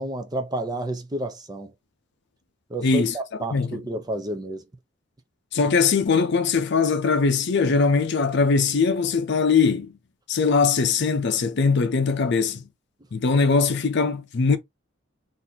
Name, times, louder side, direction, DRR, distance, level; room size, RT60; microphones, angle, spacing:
voice 1, 0.0-1.7 2.7-4.6, right 1 dB, 20° right, 0.6 m, -30 dB
voice 2, 2.8-3.2 3.5-3.8 5.5-9.9 10.3-12.6 13.1-14.6, left 4 dB, 60° left, 0.6 m, -21 dB
3.9 x 2.6 x 2.7 m
head